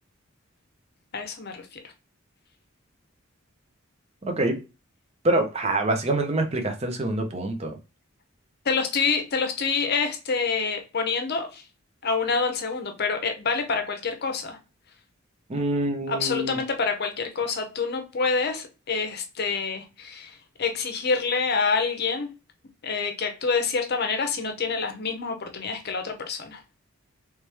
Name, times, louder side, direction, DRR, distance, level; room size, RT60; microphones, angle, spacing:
voice 1, 1.1-1.8 8.6-11.6 12.0-14.6 16.1-22.3 22.8-26.6, left 5 dB, 50° left, 0.7 m, -27 dB
voice 2, 4.2-4.6 5.2-7.7 15.5-16.6, right 2 dB, 30° right, 0.7 m, -25 dB
3.2 x 3.0 x 3.3 m
head